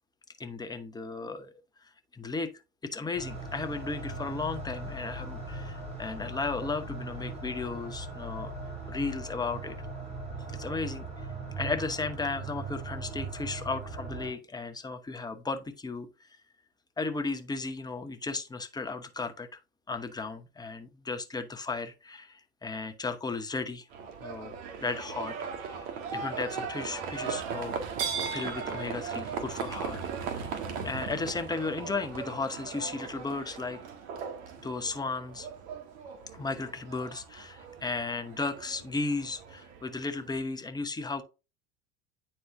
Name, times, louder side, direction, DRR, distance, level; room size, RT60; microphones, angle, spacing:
voice 1, 0.4-1.5 1.8-2.5 2.9-8.5 8.9-9.8 10.5-11.1 11.6-16.1 17.0-19.5 19.9-23.9 24.2-25.4 25.6-25.8 26.1-27.8 28.3-30.0 30.3-30.5 30.8-33.8 34.6-35.5 36.3-41.2, left 3 dB, 10° left, 0.9 m, -35 dB
sound 1, 3.2-14.3, right 3 dB, 15° right, 3.7 m, -39 dB
Livestock farm animals working animals, 23.9-40.4, right 6 dB, 60° right, 1.6 m, -38 dB
9.4 x 4.4 x 2.6 m
hypercardioid pair, 90°, 37 cm